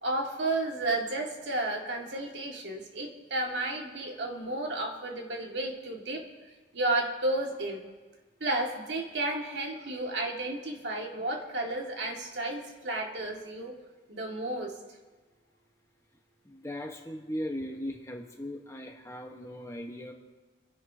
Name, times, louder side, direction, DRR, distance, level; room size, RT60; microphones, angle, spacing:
voice 1, 0.0-6.2 6.7-7.8 8.4-13.8 14.1-14.7, right 2 dB, 70° right, 0 dB, 2.1 m, -32 dB
voice 2, 16.4-20.1, equal, 15° left, 2 dB, 1.2 m, -38 dB
30.0 x 11.0 x 2.8 m, 1.3 s
head